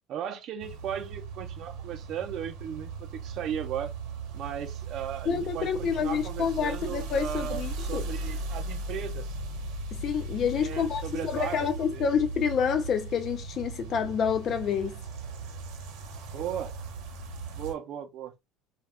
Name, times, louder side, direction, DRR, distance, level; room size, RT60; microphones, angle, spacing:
voice 1, 0.1-3.9 4.3-9.4 10.6-12.1 16.3-16.7 17.5-18.5, right 9 dB, 40° right, 0.6 m, -36 dB
sound 1, 0.6-17.7, right 3 dB, 70° right, 0.8 m, -37 dB
voice 2, 5.3-8.1 9.9-15.0, left 7 dB, 35° left, 0.4 m, -28 dB
2.4 x 2.3 x 3.5 m
cardioid pair, 170°, 0 cm